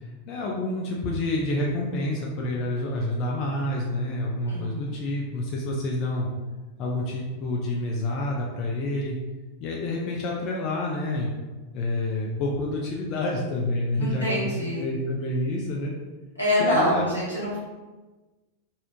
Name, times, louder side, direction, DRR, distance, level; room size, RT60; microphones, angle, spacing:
voice 1, 0.3-6.3 6.8-9.2 9.6-11.3 11.7-15.9 16.6-17.1, left 1 dB, 40° left, -2 dB, 0.4 m, -28 dB
voice 2, 4.5-5.0 14.0-14.8 16.4-17.6, equal, 90° left, -8 dB, 1.0 m, -25 dB
2.7 x 2.0 x 2.7 m, 1.2 s
figure-of-eight pair, 90°, 0 cm